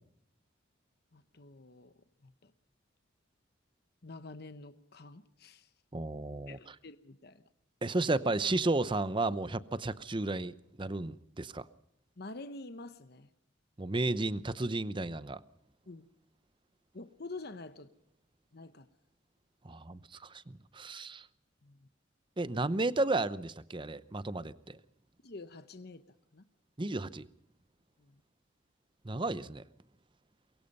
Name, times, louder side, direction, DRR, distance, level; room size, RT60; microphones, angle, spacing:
voice 1, 1.1-1.9 2.2-2.5 4.0-5.7 6.5-7.4 12.2-13.3 15.9-16.1 16.9-17.9 18.5-18.9 21.6-21.9 25.2-26.0 26.3-26.5 28.0-28.2, left 2 dB, 55° left, 1.0 m, -47 dB
voice 2, 5.9-6.7 7.8-11.7 13.8-15.4 19.6-21.3 22.4-24.8 26.8-27.3 29.0-29.6, right 2 dB, 25° right, 0.7 m, -33 dB
23.5 x 22.5 x 5.4 m
head